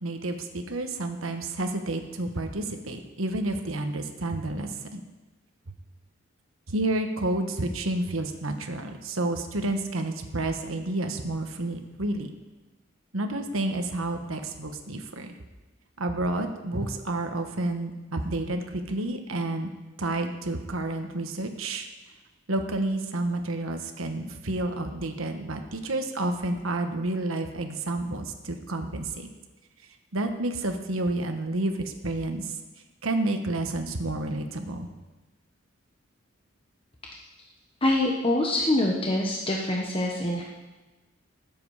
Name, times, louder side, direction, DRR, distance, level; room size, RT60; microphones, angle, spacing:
voice 1, 0.0-5.0 6.7-12.3 13.1-15.3 16.0-19.7 20.0-21.9 22.5-29.3 30.1-32.5 33.0-34.9, right 2 dB, 80° right, 5 dB, 1.4 m, -30 dB
voice 2, 37.8-40.4, left 1 dB, 25° left, -2 dB, 1.2 m, -25 dB
19.5 x 7.9 x 5.0 m, 1.2 s
head